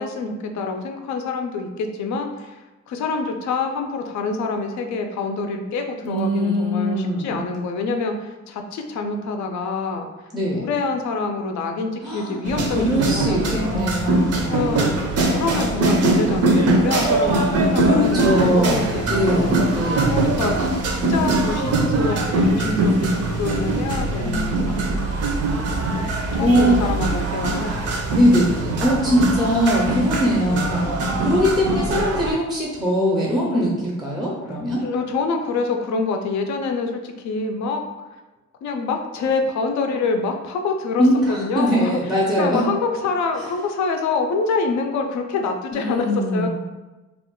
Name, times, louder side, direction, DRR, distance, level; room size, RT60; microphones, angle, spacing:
voice 1, 0.0-2.6 2.9-10.1 10.6-13.9 14.5-15.0 15.3-19.6 20.1-20.8 21.1-22.9 23.4-24.6 24.9-25.2 25.9-26.0 26.3-28.0 29.1-29.3 33.5-33.7 34.8-37.8 38.6-46.5, left 4 dB, 70° left, 4 dB, 0.5 m, -26 dB
voice 2, 6.0-7.5 10.3-10.7 12.0-12.4 12.8-14.7 17.8-20.1 24.2-24.4 26.4-27.0 28.1-34.8 41.0-42.6 45.7-46.5, equal, ahead, -4 dB, 0.5 m, -21 dB
sound 1, 12.4-32.3, right 2 dB, 55° right, 0.6 m, -22 dB
2.4 x 2.2 x 3.6 m, 1.1 s
cardioid pair, 125°, 30 cm